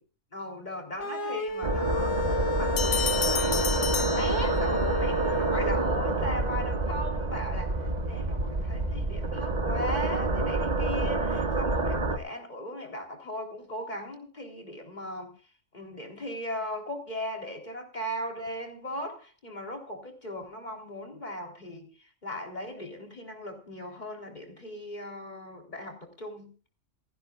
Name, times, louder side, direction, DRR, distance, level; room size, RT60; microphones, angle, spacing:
voice 1, 0.3-15.3 15.7-26.5, left 1 dB, 35° left, 3.7 m, -38 dB
sound 1, 1.0-5.8, left 1 dB, 60° left, 1.5 m, -31 dB
sound 2, 1.6-12.2, right 3 dB, 35° right, 1.3 m, -28 dB
sound 3, 2.8-5.0, left 7 dB, 75° left, 1.3 m, -31 dB
29.0 x 10.0 x 2.4 m
omnidirectional pair, 1.3 m